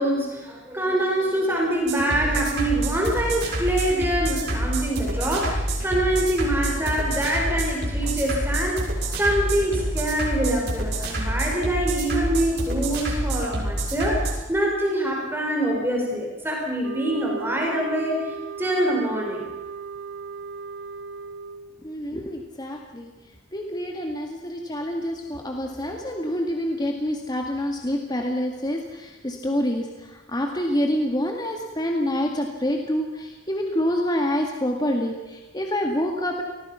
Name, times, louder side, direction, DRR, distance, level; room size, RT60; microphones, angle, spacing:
voice 1, 0.0-8.8 9.2-18.2 18.6-19.5, right 1 dB, 10° right, -1 dB, 5.1 m, -25 dB
sound 1, 1.9-14.3, right 1 dB, 60° right, 6.6 m, -27 dB
sound 2, 16.8-21.7, right 5 dB, 90° right, 1.8 m, -36 dB
voice 2, 21.8-23.1 23.5-36.4, equal, 20° left, 2 dB, 2.1 m, -27 dB
29.0 x 20.0 x 5.8 m, 1.1 s
head